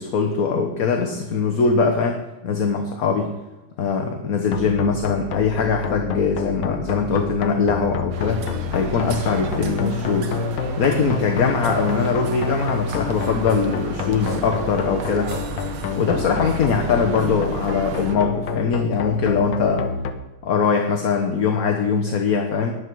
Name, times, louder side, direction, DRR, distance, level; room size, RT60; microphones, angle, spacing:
voice 1, 0.0-3.3 3.8-10.3 10.8-15.3 15.9-19.8 20.4-22.8, left 5 dB, 50° left, 3 dB, 1.2 m, -22 dB
sound 1, 4.5-20.1, left 5 dB, 75° left, 1.6 m, -28 dB
sound 2, 8.1-18.2, right 5 dB, 75° right, 1.9 m, -34 dB
12.5 x 9.9 x 4.7 m, 1.1 s
omnidirectional pair, 2.3 m